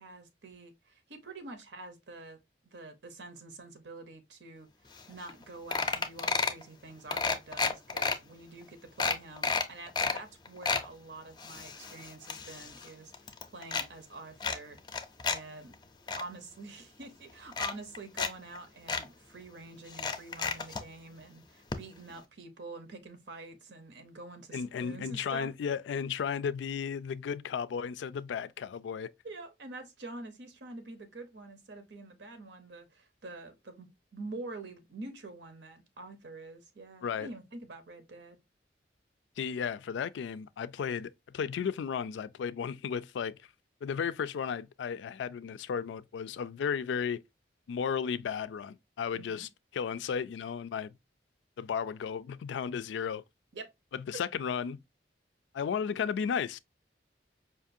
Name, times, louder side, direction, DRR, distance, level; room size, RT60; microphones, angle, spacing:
voice 1, 0.0-4.7 5.1-13.1 13.5-14.8 15.2-15.8 16.2-25.5 29.2-38.4 49.1-49.5 53.5-53.7 54.1-54.2, right 2 dB, 80° right, 0.9 m, -46 dB
sound 1, 5.0-5.1 5.3-5.4 5.7-6.6 7.1-8.2 8.6-8.7 9.0-10.2 10.5-10.9 11.4-12.9 13.1-13.9 14.4-15.4 15.7-16.2 17.0-17.1 17.5-18.3 18.6-18.7 18.9-19.0 19.9-20.8 21.7-21.8 22.1-22.2, left 4 dB, 25° left, 0.4 m, -31 dB
voice 2, 24.5-29.1 37.0-37.3 39.4-43.4 43.8-47.2 47.7-50.9 51.6-53.2 53.9-54.8 55.5-56.6, left 7 dB, 85° left, 0.3 m, -34 dB
5.1 x 2.5 x 2.6 m
head